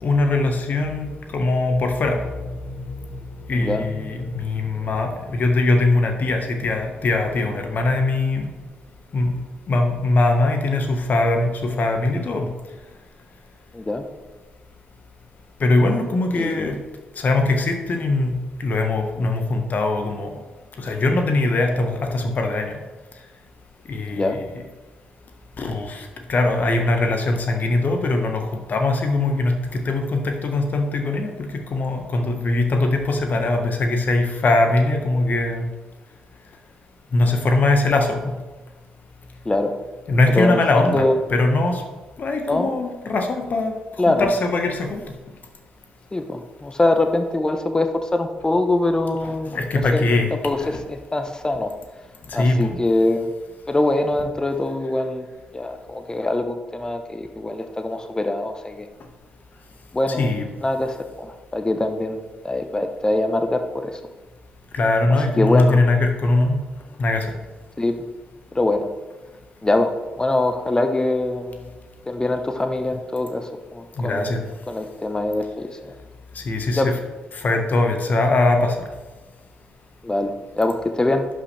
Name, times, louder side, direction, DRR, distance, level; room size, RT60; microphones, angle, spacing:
voice 1, 0.0-3.2 3.5-8.5 9.1-9.3 9.7-12.5 15.6-16.8 17.2-20.3 20.8-22.8 23.9-24.4 25.6-29.5 29.8-35.7 37.1-38.3 40.1-41.8 42.2-43.7 44.2-45.0 49.5-50.3 50.6-50.7 52.3-52.8 60.2-60.4 64.7-66.6 67.0-67.3 74.0-74.4 76.3-76.8 77.3-78.8, left 2 dB, 50° left, 4 dB, 1.5 m, -21 dB
voice 2, 3.5-3.8 13.7-14.0 16.3-16.7 24.1-24.4 39.4-39.7 40.3-41.2 42.5-42.7 44.0-44.3 46.1-49.6 49.9-51.7 52.3-53.3 53.7-55.3 55.5-58.9 59.9-64.0 65.1-65.8 67.8-68.1 68.5-68.9 69.6-71.7 72.1-74.4 74.7-75.9 76.7-76.9 80.0-81.2, left 2 dB, 20° left, 6 dB, 1.0 m, -23 dB
11.0 x 5.7 x 3.4 m, 1.2 s
hypercardioid pair, 45°, 4 cm